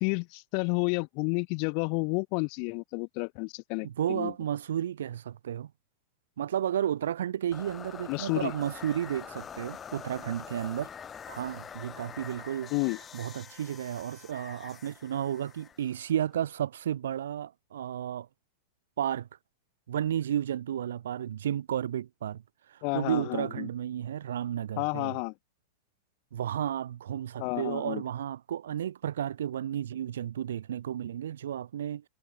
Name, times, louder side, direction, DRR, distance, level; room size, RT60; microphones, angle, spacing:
voice 1, 0.0-4.3 8.1-8.5 12.7-13.0 22.8-23.7 24.8-25.3 27.4-28.0, left 40 dB or more, 45° left, 0.5 m, -31 dB
voice 2, 3.8-5.7 6.4-10.9 11.3-12.7 13.1-18.3 19.0-19.3 19.9-22.4 22.7-25.1 26.3-32.0, right 10 dB, 65° right, 0.5 m, -32 dB
sound 1, 7.5-16.5, left 7 dB, 25° left, 2.3 m, -45 dB
figure-of-eight pair, 95°, 0 cm